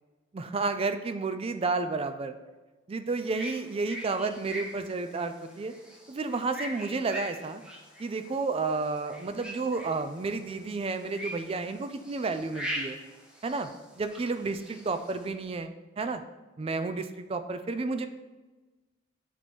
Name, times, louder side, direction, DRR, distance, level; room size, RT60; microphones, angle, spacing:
voice 1, 0.3-2.3 2.9-5.7 6.1-7.6 8.0-13.0 13.4-13.7 14.0-15.7 16.0-16.2 16.6-18.1, right 3 dB, 30° right, 9 dB, 0.4 m, -31 dB
sound 1, 3.2-15.3, equal, 5° right, 0.8 m, -42 dB
8.0 x 3.0 x 4.2 m, 1.2 s
head